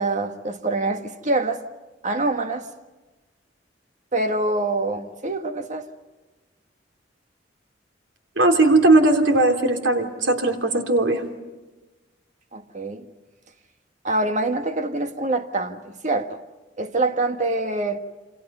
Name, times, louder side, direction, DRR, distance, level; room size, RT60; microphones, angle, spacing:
voice 1, 0.0-1.6 2.0-2.7 4.1-5.9 12.5-13.1 14.0-16.4 16.8-18.0, right 2 dB, 40° right, 1.7 m, -25 dB
voice 2, 8.4-11.2, right 2 dB, 85° right, 3.3 m, -18 dB
28.5 x 27.0 x 5.6 m
head